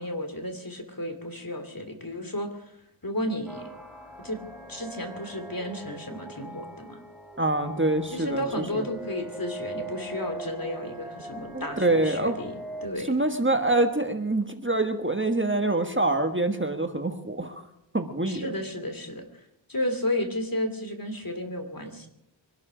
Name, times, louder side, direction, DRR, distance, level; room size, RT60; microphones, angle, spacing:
voice 1, 0.0-2.6 3.0-3.7 4.2-4.4 4.7-7.0 8.1-12.5 12.8-13.1 18.3-19.3 19.7-22.1, left 1 dB, 45° left, 6 dB, 2.7 m, -33 dB
sound 1, 3.5-12.9, right 1 dB, ahead, 2.6 m, -41 dB
voice 2, 7.4-8.4 8.7-8.8 11.5-12.4 13.1-17.6 17.9-18.5, right 2 dB, 25° right, 7 dB, 1.4 m, -25 dB
24.0 x 12.0 x 5.0 m, 0.81 s
wide cardioid pair, 45°, 48 cm